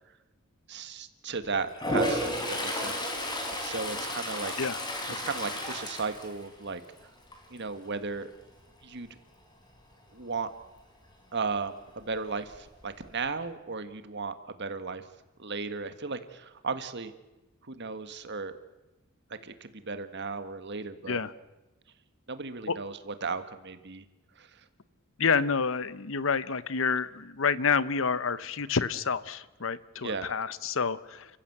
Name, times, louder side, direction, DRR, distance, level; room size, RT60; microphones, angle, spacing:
voice 1, 0.7-4.5 5.2-6.8 7.5-8.3 8.8-9.1 10.1-10.5 11.3-15.1 15.4-17.1 17.6-18.5 19.3-21.2 22.3-24.0 24.4-24.6 30.0-30.3, right 4 dB, 55° right, 10 dB, 1.7 m, -35 dB
Toilet flush, 1.7-6.9 7.3-7.7 12.2-12.3 12.5-13.3, equal, 20° left, 3.9 m, -32 dB
voice 2, 25.2-31.4, left 5 dB, 65° left, 16 dB, 0.9 m, -28 dB
30.0 x 14.5 x 8.0 m, 1.1 s
head